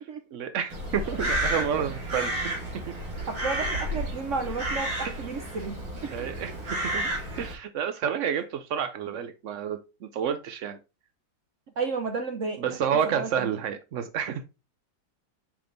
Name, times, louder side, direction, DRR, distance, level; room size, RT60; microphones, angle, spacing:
voice 1, 0.3-2.3 2.9-3.0 5.0-5.1 6.1-7.1 7.4-10.8 12.6-14.4, right 8 dB, 90° right, 0.6 m, -30 dB
Crow, 0.7-7.5, right 1 dB, 75° right, 3.5 m, -31 dB
voice 2, 3.3-6.3 11.8-12.8 13.0-13.5, right 4 dB, 55° right, 0.9 m, -32 dB
5.9 x 5.1 x 3.9 m
omnidirectional pair, 2.0 m